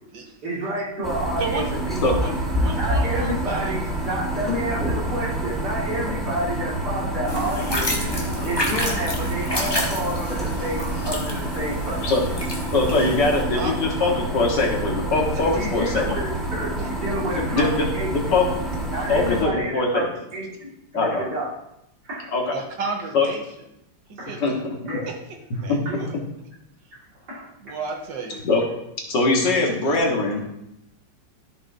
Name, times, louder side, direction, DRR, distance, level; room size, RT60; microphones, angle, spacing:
voice 1, 0.4-2.0 2.8-7.9 8.4-12.1 15.4-18.1 18.9-20.0 20.3-20.5 20.9-21.5 22.0-22.3 22.8-22.9 24.2-24.4 24.8-25.1 25.9-26.0 27.3-27.7, right 1 dB, 65° right, -6 dB, 2.8 m, -30 dB
sound 1, 1.0-19.4, right 1 dB, ahead, 1.3 m, -28 dB
voice 2, 1.4-1.7 2.0-3.8 13.2-13.3 13.5-14.3 16.8-16.9 22.5-23.4 24.1-24.4 25.5-26.2 27.6-28.4, right 4 dB, 85° right, 2 dB, 1.9 m, -32 dB
sound 2, 7.3-13.4, left 1 dB, 15° left, 1.0 m, -29 dB
voice 3, 12.7-16.2 17.2-18.5 19.1-20.0 20.9-21.2 22.3-22.5 23.1-23.3 24.4-24.5 25.7-25.8 28.4-28.6 29.1-30.4, left 3 dB, 75° left, -1 dB, 2.2 m, -22 dB
13.5 x 5.4 x 2.7 m, 0.81 s
omnidirectional pair, 1.9 m